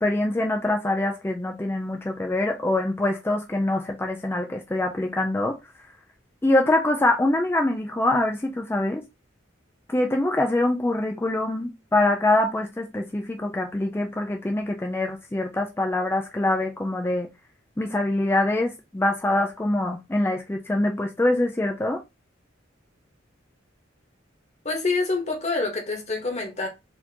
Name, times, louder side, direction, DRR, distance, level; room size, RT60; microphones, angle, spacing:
voice 1, 0.0-5.6 6.4-9.0 9.9-17.3 17.8-22.0, left 2 dB, 10° left, 0.4 m, -24 dB
voice 2, 24.6-26.7, left 3 dB, 35° left, 1.2 m, -26 dB
4.2 x 2.8 x 2.8 m
head